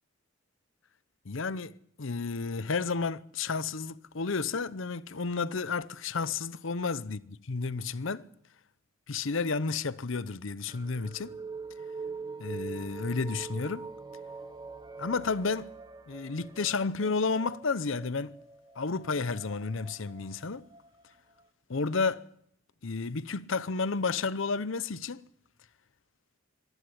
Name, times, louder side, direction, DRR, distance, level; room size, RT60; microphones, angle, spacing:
voice 1, 1.2-7.2 7.5-8.3 9.1-11.4 12.4-13.9 15.0-15.7 16.1-18.3 18.8-20.7 21.7-22.2 22.8-25.2, left 4 dB, 65° left, 0.8 m, -31 dB
sound 1, 10.7-21.4, right 4 dB, 20° right, 0.9 m, -44 dB
25.5 x 11.0 x 9.9 m
head